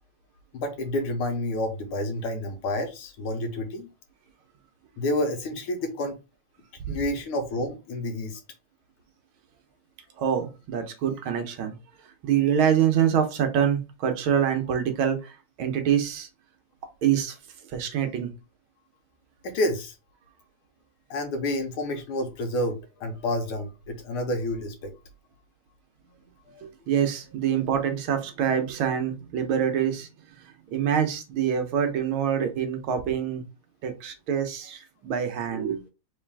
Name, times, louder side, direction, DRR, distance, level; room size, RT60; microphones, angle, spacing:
voice 1, 0.5-3.9 5.0-6.1 6.9-8.4 19.4-20.0 21.1-24.9 26.5-26.6, left 1 dB, 85° left, 1.9 m, -29 dB
voice 2, 10.2-11.8 12.2-16.3 17.0-17.4 17.7-18.3 26.6-30.1 30.4-33.4 33.8-35.8, right 8 dB, 75° right, 1.7 m, -25 dB
4.2 x 3.2 x 3.5 m
omnidirectional pair, 2.3 m